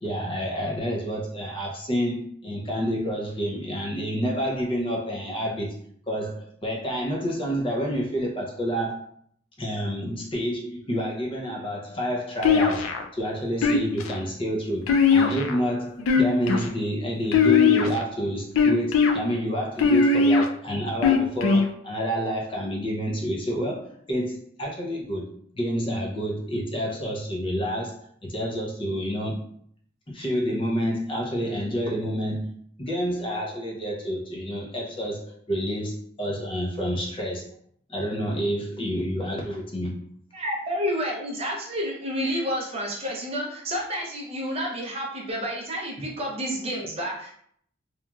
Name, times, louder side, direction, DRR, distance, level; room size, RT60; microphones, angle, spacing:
voice 1, 0.0-5.8 6.1-9.1 9.6-25.3 25.5-29.4 30.1-32.5 32.8-37.4 37.9-40.0, equal, 25° left, -2 dB, 0.5 m, -29 dB
sound 1, 12.4-13.0 13.6-14.2 14.9-15.6 16.0-16.7 17.3-18.0 18.6-19.1 19.8-20.4 21.0-21.7, left 5 dB, 85° left, 0.3 m, -19 dB
voice 2, 40.3-47.3, equal, 30° right, -2 dB, 0.5 m, -30 dB
2.9 x 2.4 x 2.2 m, 0.64 s
head